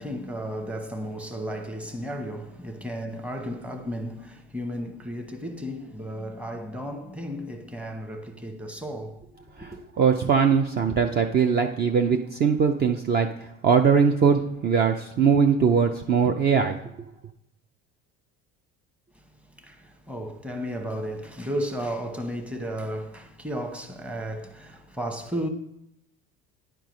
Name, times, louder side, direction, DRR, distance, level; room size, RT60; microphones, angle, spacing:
voice 1, 0.0-9.3 9.6-9.8 10.9-11.0 19.6-25.5, equal, 5° right, 0.9 m, -34 dB
voice 2, 9.6-13.3 13.6-16.8, right 6 dB, 35° right, 0.5 m, -21 dB
9.8 x 4.6 x 5.2 m
supercardioid pair, 115°, 30 cm